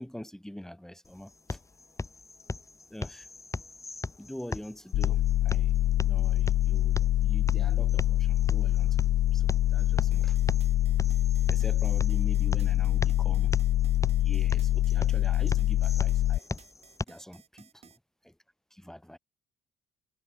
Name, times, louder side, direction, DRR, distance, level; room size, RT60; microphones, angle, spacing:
voice 1, 0.0-1.6 2.9-3.3 4.2-10.4 11.5-13.6 14.2-16.5 17.1-18.3 18.7-19.2, equal, 5° left, 2.8 m, -45 dB
sound 1, 1.0-17.0, left 3 dB, 20° left, 5.4 m, -39 dB
sound 2, 4.9-16.4, left 13 dB, 60° left, 0.8 m, -25 dB
sound 3, 10.1-18.0, right 6 dB, 40° right, 6.9 m, -56 dB
cardioid pair, 110°, 17 cm